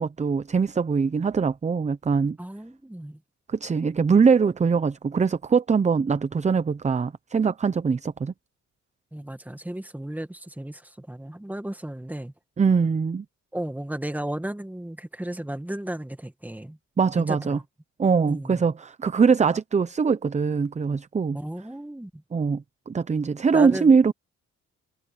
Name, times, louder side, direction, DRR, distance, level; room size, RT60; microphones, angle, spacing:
voice 1, 0.0-2.4 3.5-8.3 12.6-13.2 17.0-17.6 18.0-21.4 22.3-24.1, right 5 dB, 25° right, 0.7 m, -22 dB
voice 2, 2.4-3.2 9.1-12.3 13.5-16.8 17.2-17.6 18.3-18.7 21.3-22.2 23.5-23.9, right 1 dB, 5° right, 1.8 m, -34 dB
cardioid pair, 90°, 30 cm